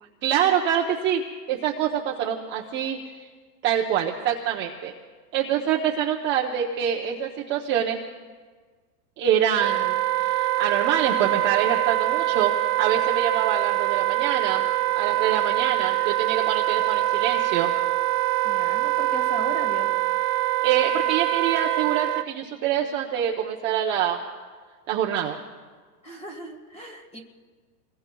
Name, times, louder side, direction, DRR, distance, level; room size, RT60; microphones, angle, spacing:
voice 1, 0.2-1.2 1.5-3.3 3.6-4.9 5.3-8.0 9.2-12.5 12.8-14.7 15.0-17.7 20.6-24.2 24.9-25.4, right 9 dB, 25° right, -1 dB, 0.8 m, -25 dB
Wind instrument woodwind instrument, 9.6-22.3, right 17 dB, 70° right, 0.5 m, -24 dB
voice 2, 18.4-19.9 26.0-27.2, equal, 15° left, 4 dB, 1.7 m, -37 dB
28.0 x 21.5 x 2.3 m, 1.5 s
supercardioid pair, 155°, 49 cm